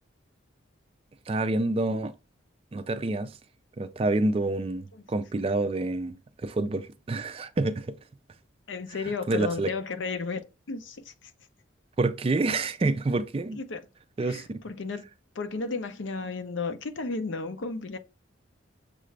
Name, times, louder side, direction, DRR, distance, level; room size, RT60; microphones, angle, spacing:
voice 1, 1.3-2.1 2.7-3.4 3.8-7.9 9.3-9.7 12.0-13.6 14.2-14.6, right 2 dB, 30° right, 0.3 m, -28 dB
voice 2, 8.7-11.3 13.6-13.8 14.2-15.1 15.3-18.0, left 4 dB, 70° left, 0.6 m, -33 dB
6.6 x 2.4 x 3.2 m
head